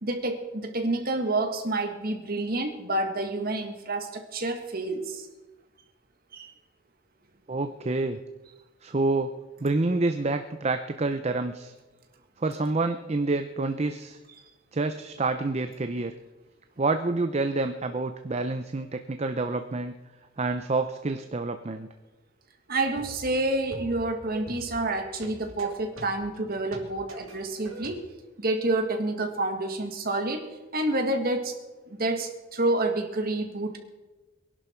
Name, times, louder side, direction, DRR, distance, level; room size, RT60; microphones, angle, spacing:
voice 1, 0.0-5.3 6.3-6.5 22.7-28.0 28.4-31.6 31.9-33.8, right 2 dB, 45° right, 5 dB, 1.8 m, -28 dB
voice 2, 7.5-8.2 8.8-9.3 9.6-11.7 12.4-14.2 14.7-16.1 16.8-19.9 20.4-21.9, right 3 dB, 30° right, 8 dB, 0.6 m, -28 dB
sound 1, 22.8-28.0, right 2 dB, 85° right, 2.8 m, -43 dB
23.0 x 11.5 x 4.5 m, 1.2 s
head